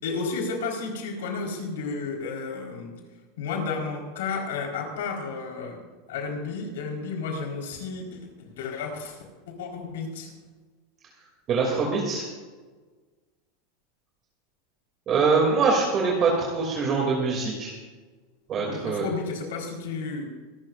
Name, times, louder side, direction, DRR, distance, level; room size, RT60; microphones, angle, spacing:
voice 1, 0.0-3.0 3.4-5.8 6.1-9.2 9.5-10.3 18.6-20.2, left 4 dB, 85° left, 1 dB, 4.4 m, -32 dB
voice 2, 11.5-12.2 15.1-17.7 18.5-19.1, right 4 dB, 35° right, -1 dB, 2.8 m, -23 dB
25.0 x 13.0 x 2.6 m, 1.4 s
supercardioid pair, 135°, 0 cm